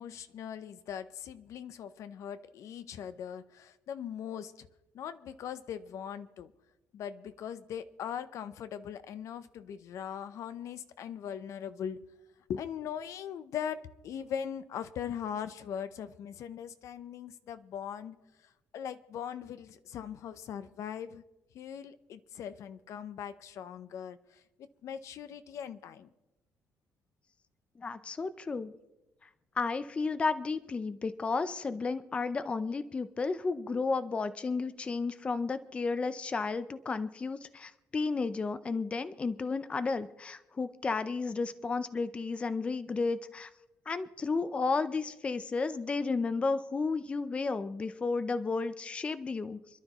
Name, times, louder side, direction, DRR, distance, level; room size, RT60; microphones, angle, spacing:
voice 1, 0.0-4.7 4.9-6.5 6.9-12.0 12.5-18.2 18.7-21.2 21.5-26.1, left 8 dB, 60° left, 13 dB, 0.7 m, -40 dB
voice 2, 27.8-28.7 29.2-29.3 29.6-43.5 43.9-49.6, left 4 dB, 20° left, 12 dB, 0.5 m, -32 dB
27.5 x 12.0 x 3.0 m, 0.99 s
cardioid pair, 160°, 6 cm